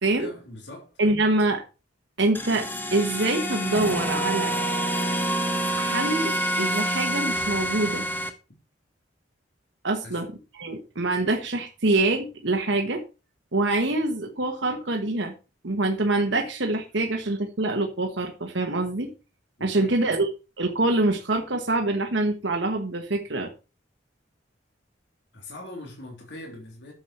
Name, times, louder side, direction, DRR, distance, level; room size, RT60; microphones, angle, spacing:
voice 1, 0.2-0.9 10.0-10.2 19.6-19.9 25.3-26.9, left 1 dB, 65° left, 3.2 m, -41 dB
voice 2, 1.0-1.6 2.2-4.5 5.8-8.0 9.8-10.3 10.5-13.0 13.5-15.3 15.6-19.1 19.6-20.3 20.6-23.5, right 2 dB, 70° right, 1.4 m, -25 dB
sound 1, 2.3-8.3, right 1 dB, 10° left, 1.2 m, -27 dB
11.5 x 7.3 x 4.4 m
head